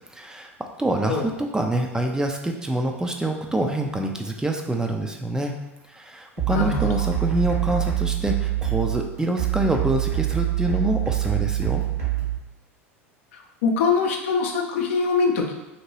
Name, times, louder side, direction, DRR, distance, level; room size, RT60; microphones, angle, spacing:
voice 1, 0.1-5.5 5.9-11.8, right 1 dB, 10° right, 3 dB, 0.4 m, -26 dB
sound 1, 6.4-12.4, right 14 dB, 80° right, 1.2 m, -25 dB
voice 2, 13.6-15.5, left 5 dB, 65° left, 2 dB, 0.5 m, -22 dB
2.9 x 2.8 x 2.8 m, 1.1 s
figure-of-eight pair, 80°, 8 cm